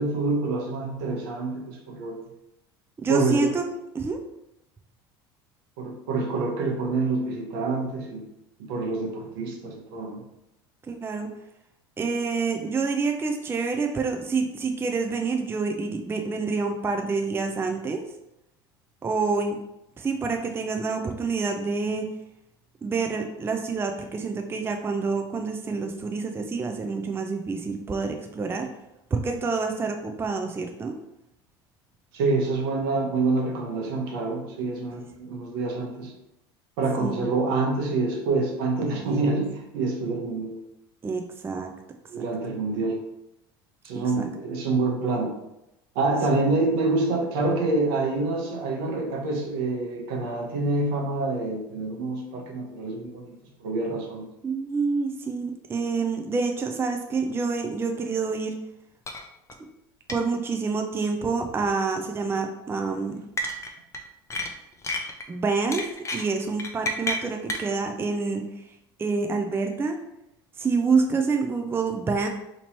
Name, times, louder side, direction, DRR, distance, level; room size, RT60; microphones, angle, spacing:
voice 1, 0.0-2.2 3.1-3.5 5.8-8.2 8.6-10.2 32.1-36.1 36.8-40.6 42.1-43.0 43.8-45.3 45.9-54.3, right 3 dB, 75° right, 1 dB, 0.9 m, -27 dB
voice 2, 3.0-3.7 3.9-4.2 10.9-11.3 12.0-18.0 19.0-19.6 20.0-22.1 22.8-28.7 29.1-31.0 37.0-37.2 39.0-39.4 41.0-41.7 43.9-44.3 54.4-58.6 60.1-63.2 65.3-68.5 69.0-70.0 70.6-72.3, right 4 dB, 20° right, 4 dB, 0.4 m, -27 dB
sound 1, 59.1-59.2 59.5-59.6 60.1-60.2 61.4-61.7 63.4-64.0 64.3-65.2 65.7-67.7, left 1 dB, 25° left, 0.6 m, -30 dB
2.9 x 2.9 x 4.2 m, 0.86 s
hypercardioid pair, 85°, 12 cm